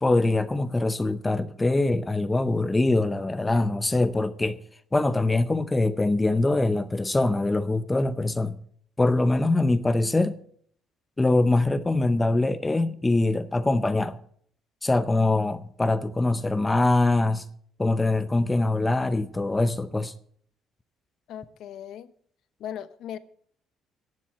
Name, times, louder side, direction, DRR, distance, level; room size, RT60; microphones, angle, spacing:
voice 1, 0.0-4.6 4.9-8.6 9.0-10.4 11.2-14.2 14.8-17.5 17.8-20.1, left 2 dB, 15° left, 0.6 m, -23 dB
voice 2, 21.3-22.1 22.6-23.2, left 10 dB, 65° left, 0.8 m, -38 dB
10.5 x 7.4 x 8.9 m
cardioid pair, 150°, 0 cm